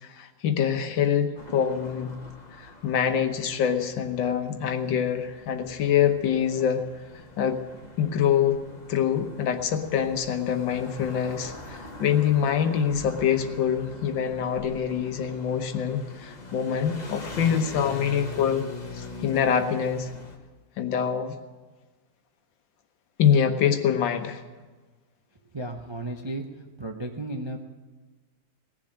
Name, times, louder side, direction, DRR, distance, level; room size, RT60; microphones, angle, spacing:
voice 1, 0.0-2.1 2.6-6.8 7.4-7.6 8.0-8.6 8.9-18.6 18.9-20.1 20.8-21.4 23.2-24.4, left 8 dB, 80° left, 7 dB, 1.8 m, -25 dB
sound 1, 1.3-20.4, left 2 dB, 25° left, 1.2 m, -43 dB
voice 2, 25.5-26.4 26.8-27.6, right 1 dB, 30° right, 3 dB, 0.4 m, -33 dB
18.5 x 7.4 x 8.7 m, 1.3 s
omnidirectional pair, 2.0 m